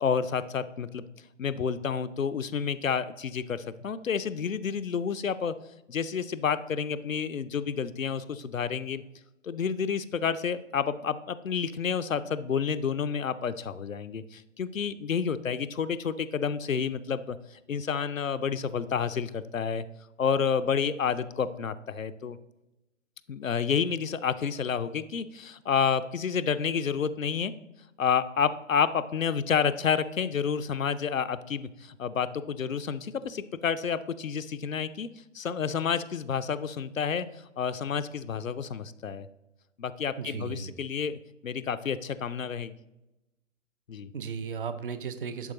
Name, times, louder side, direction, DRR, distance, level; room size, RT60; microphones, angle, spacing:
voice 1, 0.0-1.0 1.4-5.5 5.9-9.0 9.4-17.4 17.7-19.8 20.2-22.4 23.3-27.5 28.0-35.1 35.3-37.3 37.6-39.3 39.8-42.7 43.9-44.1, left 6 dB, 85° left, 12 dB, 0.5 m, -29 dB
voice 2, 40.2-40.7 44.1-45.5, right 6 dB, 45° right, 11 dB, 0.6 m, -35 dB
10.5 x 4.4 x 2.9 m, 0.96 s
figure-of-eight pair, 130°, 39 cm